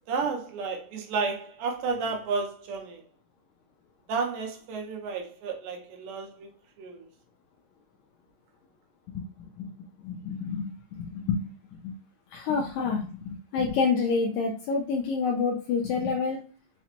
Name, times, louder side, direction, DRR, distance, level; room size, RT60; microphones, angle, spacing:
voice 1, 0.1-3.0 4.1-6.5 6.8-7.1, right 4 dB, 80° right, 2.2 m, -32 dB
voice 2, 10.0-11.4 11.8-11.9 12.3-16.4, left 5 dB, 80° left, 1.7 m, -28 dB
5.7 x 2.1 x 2.9 m
omnidirectional pair, 3.8 m